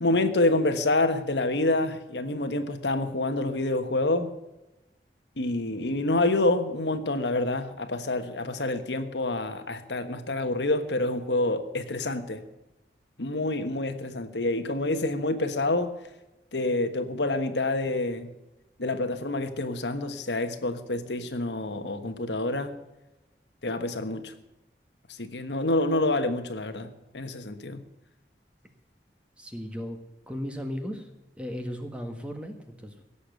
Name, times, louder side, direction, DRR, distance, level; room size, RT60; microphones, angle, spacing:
voice 1, 0.0-4.3 5.4-12.4 13.2-15.9 16.5-18.3 18.8-22.7 23.6-24.3 25.2-26.9 27.1-27.8, left 2 dB, 85° left, 8 dB, 1.4 m, -27 dB
voice 2, 29.4-30.0 30.3-31.1 31.4-33.0, equal, 5° right, 5 dB, 1.6 m, -36 dB
17.0 x 7.2 x 8.1 m, 0.99 s
head